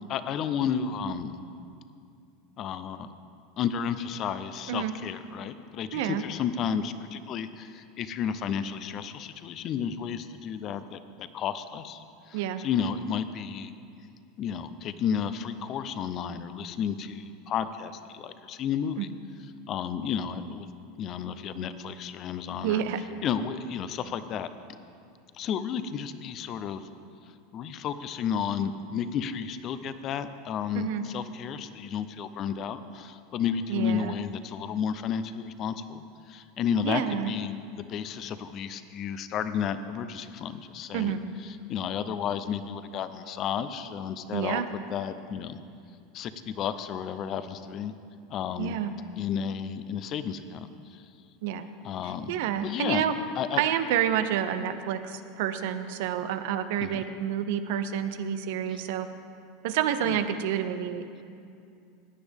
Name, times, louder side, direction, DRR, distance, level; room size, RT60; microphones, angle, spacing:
voice 1, 0.1-1.4 2.6-3.1 3.6-13.7 14.4-19.1 19.7-20.7 21.0-22.8 23.2-24.5 25.3-26.8 27.5-44.6 44.9-45.6 46.1-47.9 48.3-48.8 49.2-51.1 51.8-52.3 52.6-53.0 53.4-53.6 56.8-57.0 58.7-58.8 60.0-60.2, left 7 dB, 45° left, 12 dB, 0.6 m, -32 dB
voice 2, 5.9-6.2 12.3-12.6 19.0-19.1 22.6-23.0 30.7-31.0 33.7-34.1 36.8-37.3 40.9-41.2 44.3-44.7 48.6-48.9 51.4-51.7 52.3-53.1 53.5-59.1 59.6-61.2, right 10 dB, 70° right, 10 dB, 0.7 m, -29 dB
16.5 x 9.6 x 3.6 m, 2.5 s
hypercardioid pair, 100°, 0 cm